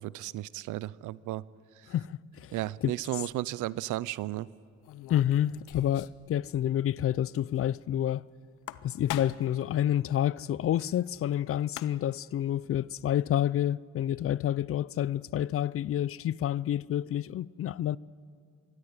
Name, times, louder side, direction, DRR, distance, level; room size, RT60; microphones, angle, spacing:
voice 1, 0.0-1.4 2.5-4.5, right 16 dB, 85° right, 0.6 m, -34 dB
voice 2, 1.9-2.5 2.8-2.9 5.1-8.2 8.8-18.0, left 11 dB, 50° left, 0.4 m, -29 dB
sound 1, 3.0-3.3 4.8-6.3 6.5-6.6 6.9-7.0 8.4-9.6 11.3-11.4 11.6-12.2, left 14 dB, 85° left, 0.7 m, -41 dB
24.5 x 13.5 x 9.7 m
cardioid pair, 90°, 30 cm